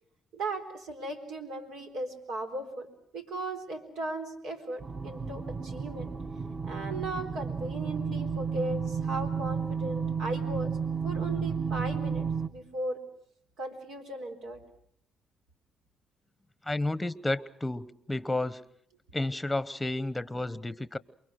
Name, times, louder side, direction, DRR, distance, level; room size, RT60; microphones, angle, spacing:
voice 1, 0.3-2.9 3.1-6.1 6.6-10.7 11.0-12.3 12.5-13.0 13.6-14.6, right 2 dB, 85° right, 4.0 m, -37 dB
sound 1, 4.8-12.5, right 6 dB, 30° right, 1.4 m, -32 dB
voice 2, 16.6-18.6 19.1-21.0, left 2 dB, 10° left, 0.9 m, -31 dB
28.5 x 23.0 x 6.4 m
cardioid pair, 90°, 0 cm